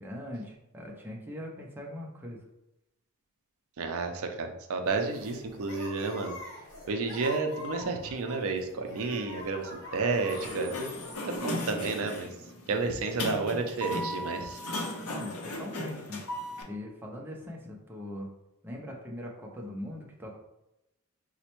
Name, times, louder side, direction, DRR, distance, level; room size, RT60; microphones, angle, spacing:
voice 1, 0.0-2.4 15.0-16.2 16.6-18.3 18.6-20.4, left 1 dB, 10° right, -2 dB, 0.5 m, -41 dB
voice 2, 3.8-6.3 6.9-10.7 11.2-12.3 12.7-14.6, right 4 dB, 65° right, 5 dB, 0.4 m, -31 dB
sound 1, 4.8-11.2, left 2 dB, 65° left, 1.0 m, -45 dB
Sliding door, 10.1-16.6, left 1 dB, 85° left, 0.6 m, -36 dB
4.1 x 2.1 x 2.9 m, 0.89 s
head